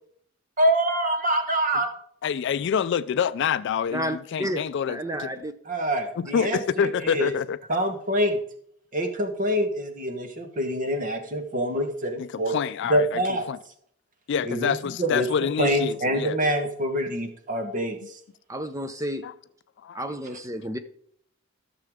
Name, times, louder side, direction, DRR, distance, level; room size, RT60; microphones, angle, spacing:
voice 1, 0.6-1.9 5.7-7.3 7.7-8.4 8.9-12.5 12.9-13.4 14.4-14.7 15.0-15.3 15.6-18.0, right 1 dB, 40° right, 1.2 m, -25 dB
voice 2, 2.2-5.3 6.2-7.6 12.2-13.2 13.5-13.6 14.3-16.4 19.2-19.3 19.8-20.0, left 7 dB, 60° left, 0.3 m, -27 dB
voice 3, 3.9-5.5 18.5-19.2 19.9-20.8, equal, 15° right, 0.6 m, -31 dB
14.0 x 6.8 x 3.6 m
head